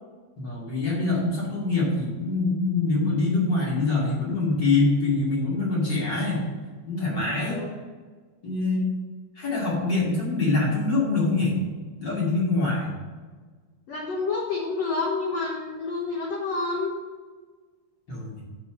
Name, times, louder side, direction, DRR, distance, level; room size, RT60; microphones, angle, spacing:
voice 1, 0.4-6.4 6.8-7.6 8.4-8.9 9.4-11.5 12.0-12.9 18.1-18.4, left 3 dB, 30° left, -5 dB, 2.4 m, -24 dB
voice 2, 7.4-7.8 13.9-16.9, left 3 dB, 75° left, -3 dB, 1.5 m, -29 dB
6.2 x 5.7 x 7.1 m, 1.4 s
omnidirectional pair, 4.7 m